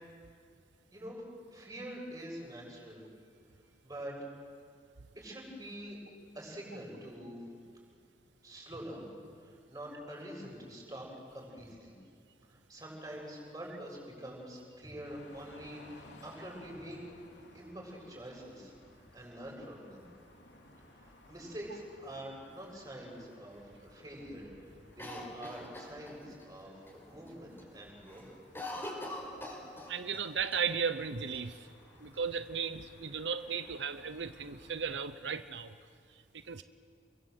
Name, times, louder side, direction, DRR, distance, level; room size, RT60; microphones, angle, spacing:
voice 1, 0.9-1.2 1.5-3.0 3.8-4.2 5.2-6.0 6.3-7.4 8.4-9.1 9.4-11.9 12.5-17.0 17.5-18.7 19.1-20.0 20.9-28.3, right 1 dB, 20° right, -1 dB, 7.5 m, -46 dB
sound 1, 15.0-34.9, left 1 dB, 90° left, 3.2 m, -59 dB
Cough, 25.0-26.5 26.9-27.0 27.3-27.7 28.0-30.2 30.5-30.6 31.3-32.1, left 1 dB, 15° left, 5.6 m, -43 dB
voice 2, 29.9-31.7 32.0-35.7 36.1-36.6, right 6 dB, 90° right, 11 dB, 0.9 m, -36 dB
29.0 x 23.5 x 8.1 m, 2.2 s
head